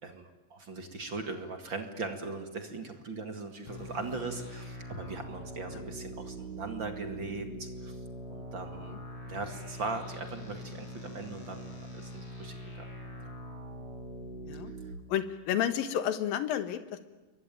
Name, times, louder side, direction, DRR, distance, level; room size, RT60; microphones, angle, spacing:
voice 1, 0.0-8.0 8.3-9.0 9.3-12.9 13.2-13.3 14.7-14.8, right 3 dB, 40° right, 6 dB, 2.3 m, -39 dB
sound 1, 3.7-14.9, equal, 40° left, 5.1 m, -43 dB
voice 2, 15.1-17.0, left 10 dB, 80° left, 10 dB, 3.2 m, -31 dB
28.5 x 23.0 x 9.1 m, 1.1 s
omnidirectional pair, 4.0 m